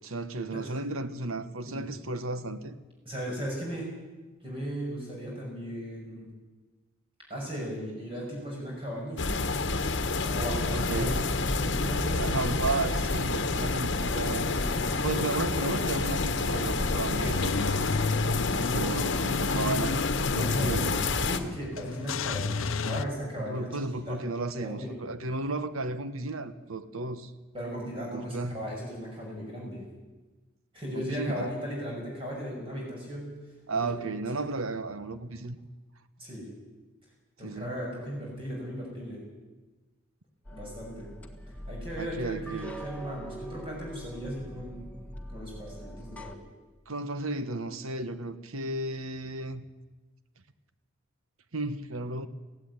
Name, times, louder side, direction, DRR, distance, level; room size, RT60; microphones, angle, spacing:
voice 1, 0.0-2.7 10.7-11.3 12.1-14.7 15.0-17.8 18.5-20.0 20.3-21.0 23.4-27.3 28.1-28.6 30.9-31.5 33.7-35.6 37.4-37.7 42.0-42.8 46.9-49.7 51.5-52.3, right 2 dB, 90° right, 12 dB, 1.2 m, -34 dB
voice 2, 3.0-3.9 4.4-6.3 7.3-9.4 10.3-11.1 11.6-12.5 14.5-15.1 18.7-19.0 20.3-20.8 21.2-23.7 24.1-24.2 24.6-24.9 27.5-29.8 30.7-33.4 33.7-34.1 34.4-34.5 36.2-36.5 37.4-39.2 40.5-41.1 41.7-44.9 45.3-46.4, equal, 25° right, -3 dB, 6.2 m, -37 dB
sound 1, 9.2-21.4, left 3 dB, 55° left, 1.2 m, -28 dB
Car / Engine starting / Idling, 17.3-23.1, left 4 dB, 75° left, 0.7 m, -32 dB
sound 2, 40.4-46.4, right 1 dB, 5° left, 1.7 m, -43 dB
18.0 x 16.0 x 9.6 m, 1.2 s
head